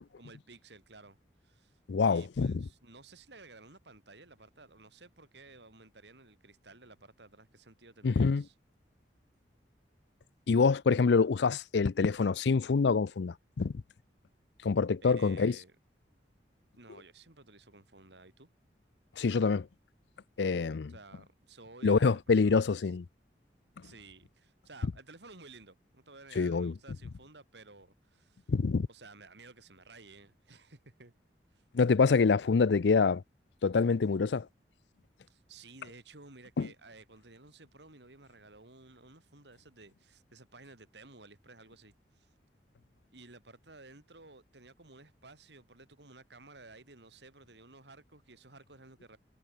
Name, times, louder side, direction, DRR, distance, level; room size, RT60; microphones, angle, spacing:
voice 1, 0.2-1.2 1.4-8.5 15.0-15.8 16.8-18.5 20.9-22.7 23.8-28.5 28.9-31.1 31.6-31.7 35.3-42.3 43.1-49.2, right 3 dB, 80° right, 3.7 m, -54 dB
voice 2, 1.9-2.6 8.0-8.4 10.5-13.7 14.6-15.6 19.2-19.7 20.4-20.9 21.8-23.0 26.4-26.7 28.5-28.9 31.7-33.2 33.6-34.5 36.6-36.7, left 4 dB, 75° left, 0.5 m, -26 dB
head